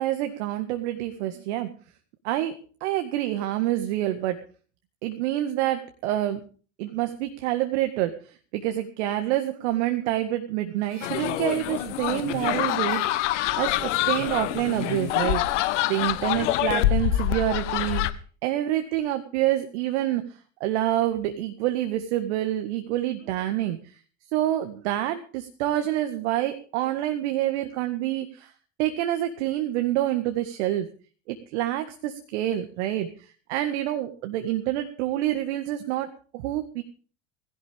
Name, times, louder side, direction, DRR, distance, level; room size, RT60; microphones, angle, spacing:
voice 1, 0.0-1.7 2.2-4.4 5.0-6.4 6.8-15.4 15.9-24.0 24.3-28.5 28.8-30.9 31.3-36.8, right 13 dB, 65° right, 7 dB, 1.9 m, -27 dB
Harmonica, 10.8-17.3, right 5 dB, 85° right, 3.0 m, -52 dB
sound 1, 11.0-18.1, left 14 dB, 70° left, 1.3 m, -26 dB
19.0 x 16.5 x 3.6 m, 0.40 s
figure-of-eight pair, 70°, 37 cm